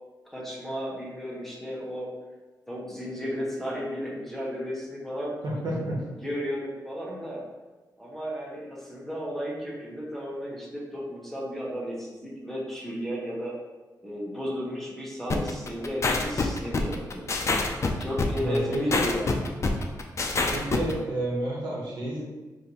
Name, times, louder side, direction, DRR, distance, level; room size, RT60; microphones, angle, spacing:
voice 1, 0.3-2.1 2.7-5.3 6.2-7.4 8.0-13.5 14.0-17.3 18.0-19.3, equal, 5° left, -5 dB, 1.0 m, -34 dB
voice 2, 5.4-6.0 18.4-19.0 20.5-22.2, right 1 dB, 80° right, -5 dB, 1.3 m, -30 dB
sound 1, 15.3-20.9, left 3 dB, 40° left, 0.4 m, -26 dB
5.1 x 2.6 x 2.9 m, 1.2 s
wide cardioid pair, 100°, 7 cm